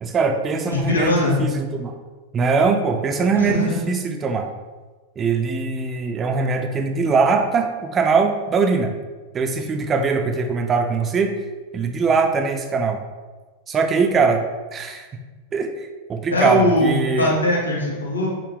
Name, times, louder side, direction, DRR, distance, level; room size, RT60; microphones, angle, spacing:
voice 1, 0.0-2.0 2.3-4.5 5.2-8.9 9.3-11.3 11.7-13.0 13.7-15.1 15.5-17.3, right 4 dB, 25° right, 4 dB, 0.4 m, -21 dB
voice 2, 0.7-1.3 3.4-3.8 16.3-18.3, left 1 dB, 75° left, -4 dB, 1.2 m, -20 dB
6.2 x 2.1 x 3.4 m, 1.3 s
figure-of-eight pair, 90°, 0 cm